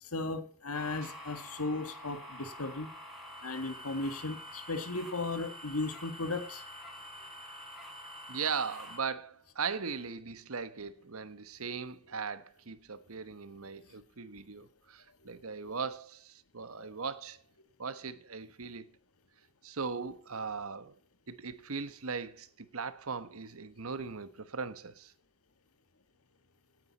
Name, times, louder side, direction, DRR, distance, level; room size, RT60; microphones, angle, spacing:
voice 1, 0.0-2.9 3.4-6.6 15.2-15.7 16.8-16.9, left 3 dB, 85° left, 1.8 m, -36 dB
sound 1, 0.7-9.0, left 1 dB, ahead, 5.2 m, -47 dB
voice 2, 8.3-17.4 17.8-18.9 19.6-20.9 21.3-25.1, right 5 dB, 70° right, 1.2 m, -39 dB
17.5 x 9.3 x 4.2 m
head